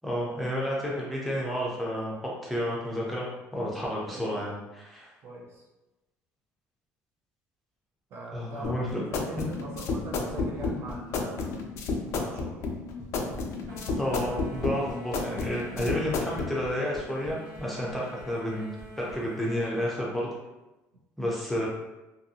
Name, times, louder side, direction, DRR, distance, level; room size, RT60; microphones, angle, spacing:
voice 1, 0.0-5.1 8.3-9.0 9.4-9.5 14.0-20.3 21.2-21.7, equal, ahead, -5 dB, 0.5 m, -31 dB
voice 2, 4.1-4.5 5.2-5.6 8.1-11.7 12.1-12.6, right 2 dB, 50° right, -2 dB, 0.6 m, -42 dB
sound 1, 8.6-16.5, left 4 dB, 55° left, 0.4 m, -31 dB
sound 2, 9.7-19.2, equal, 20° right, 0.9 m, -47 dB
sound 3, 13.7-19.8, equal, 80° right, 1.4 m, -47 dB
2.7 x 2.6 x 2.7 m, 1.0 s
cardioid pair, 160°, 6 cm